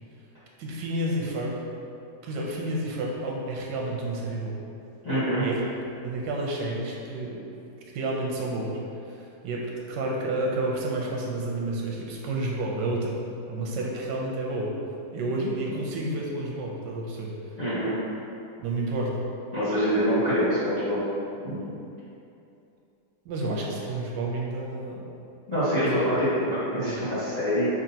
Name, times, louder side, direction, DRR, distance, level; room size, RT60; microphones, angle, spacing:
voice 1, 0.6-1.6 2.2-4.6 5.4-5.6 6.0-7.4 7.9-8.8 9.1-13.1 13.5-14.7 15.1-17.3 18.6-19.2 23.2-25.0 25.8-26.0 26.9-27.0, right 2 dB, 85° right, -2 dB, 1.3 m, -30 dB
voice 2, 5.0-5.4 17.6-17.9 19.5-21.0 21.4-21.6 25.5-27.7, equal, 25° left, -15 dB, 1.2 m, -25 dB
5.7 x 2.7 x 2.8 m, 2.7 s
omnidirectional pair, 1.9 m